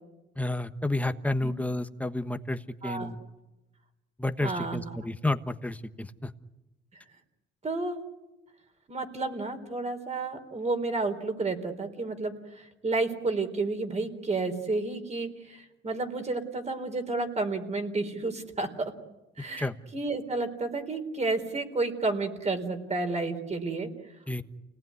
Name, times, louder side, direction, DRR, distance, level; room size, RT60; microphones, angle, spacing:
voice 1, 0.4-3.2 4.2-6.3 19.6-19.8 24.3-24.4, left 2 dB, 5° left, 9 dB, 1.3 m, -31 dB
voice 2, 4.4-4.9 7.6-8.0 8.9-18.9 19.4-23.9, right 3 dB, 35° right, 6 dB, 3.9 m, -31 dB
29.0 x 19.0 x 9.6 m, 1.0 s
cardioid pair, 90°, 20 cm